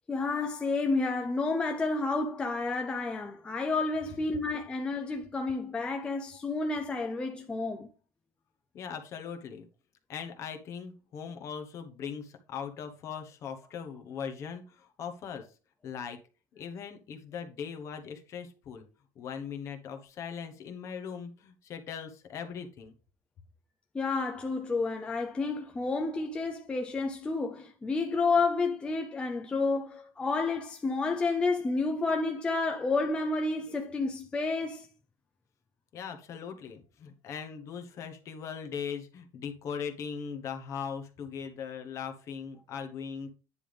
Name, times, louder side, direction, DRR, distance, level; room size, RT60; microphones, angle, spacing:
voice 1, 0.1-7.9 23.9-34.9, left 3 dB, 10° left, 0.5 m, -30 dB
voice 2, 8.7-9.7 10.1-15.6 15.8-16.2 16.5-18.9 19.1-22.9 35.9-43.3, left 7 dB, 35° left, 1.0 m, -40 dB
9.7 x 3.4 x 5.3 m
cardioid pair, 175°, 8 cm